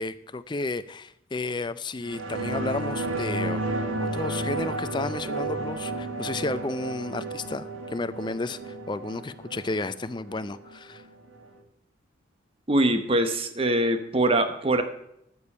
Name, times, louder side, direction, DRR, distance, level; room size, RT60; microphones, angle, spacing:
voice 1, 0.0-3.6 4.0-11.0, left 3 dB, 20° left, 14 dB, 0.4 m, -32 dB
sound 1, 2.0-11.1 11.4-11.5, right 2 dB, 85° right, 1.5 m, -32 dB
voice 2, 12.7-14.8, right 1 dB, 30° right, 9 dB, 1.0 m, -23 dB
13.5 x 6.9 x 5.5 m, 0.77 s
head